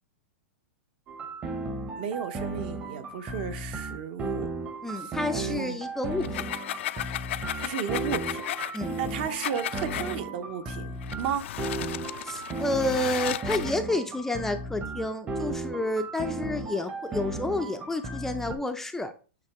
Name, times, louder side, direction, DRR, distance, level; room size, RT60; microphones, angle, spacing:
sound 1, 1.1-18.6, right 2 dB, 20° right, 0.8 m, -35 dB
voice 1, 2.0-4.5 5.0-5.8 7.6-8.4 9.0-11.5, right 8 dB, 50° right, 0.8 m, -34 dB
voice 2, 4.8-6.3 8.7-8.9 12.2-19.1, left 1 dB, 5° left, 0.4 m, -30 dB
sound 2, 6.1-10.2 11.0-13.8, left 13 dB, 65° left, 0.4 m, -35 dB
8.4 x 2.9 x 4.7 m
hypercardioid pair, 150°, 7 cm